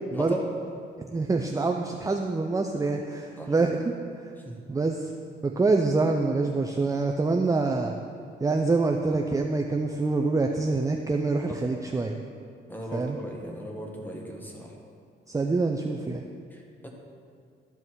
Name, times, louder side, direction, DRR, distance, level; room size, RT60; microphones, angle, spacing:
voice 1, 0.1-0.5 3.4-3.5 4.4-4.6 11.5-11.6 12.7-14.7 16.5-16.9, equal, 10° left, 0 dB, 1.7 m, -37 dB
voice 2, 1.0-3.9 4.2-4.3 4.7-5.1 5.4-7.9 8.4-12.2 12.9-13.2 15.3-16.2, right 3 dB, 15° right, 3 dB, 0.5 m, -26 dB
13.0 x 5.5 x 4.7 m, 2.2 s
cardioid pair, 90°, 20 cm